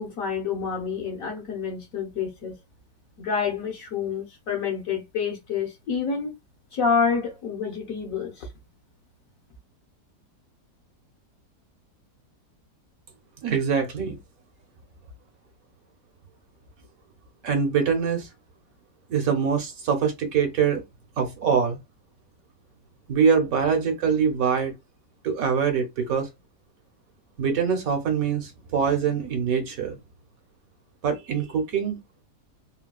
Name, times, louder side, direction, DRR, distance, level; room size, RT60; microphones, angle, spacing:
voice 1, 0.0-2.6 3.2-6.3 6.7-8.5, left 6 dB, 60° left, 1.1 m, -28 dB
voice 2, 13.4-14.2 17.4-18.3 19.1-20.8 21.2-21.8 23.1-24.7 25.2-26.3 27.4-30.0 31.0-32.0, right 6 dB, 65° right, 1.2 m, -24 dB
3.8 x 2.2 x 2.3 m
omnidirectional pair, 1.8 m